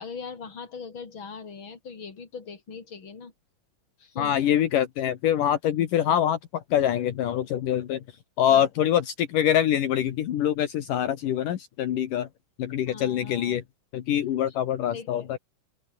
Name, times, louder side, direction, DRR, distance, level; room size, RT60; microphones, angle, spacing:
voice 1, 0.0-3.3 4.0-4.4 8.5-8.7 12.9-13.6 14.9-15.3, left 5 dB, 35° left, 4.3 m, -40 dB
voice 2, 4.2-8.0 8.4-12.3 12.6-13.6 13.9-15.4, left 10 dB, 70° left, 3.1 m, -24 dB
open air
omnidirectional pair, 4.1 m